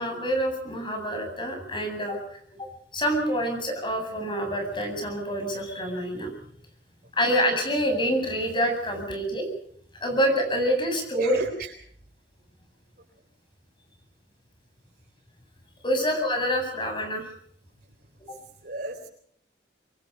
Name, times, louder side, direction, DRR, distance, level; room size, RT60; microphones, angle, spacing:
voice 1, 0.0-2.2 2.6-2.7 2.9-6.3 7.1-9.5 10.0-11.4 15.8-17.3, equal, 30° left, 5 dB, 7.9 m, -26 dB
voice 2, 11.2-11.7 18.2-19.1, right 2 dB, 55° right, -2 dB, 4.4 m, -35 dB
26.0 x 22.5 x 5.6 m, 0.62 s
head